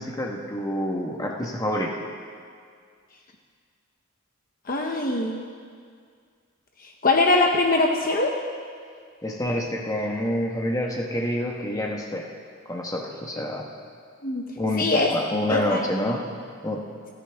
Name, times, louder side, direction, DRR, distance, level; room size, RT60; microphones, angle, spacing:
voice 1, 0.0-1.9 9.2-12.3 12.6-13.6 14.6-16.2 16.6-16.8, left 1 dB, 15° left, 0 dB, 1.3 m, -27 dB
voice 2, 4.7-5.4 7.0-8.3 14.2-14.5 14.8-15.1 15.5-15.8, left 2 dB, 40° left, 1 dB, 0.9 m, -22 dB
29.0 x 10.0 x 3.5 m, 2.1 s
head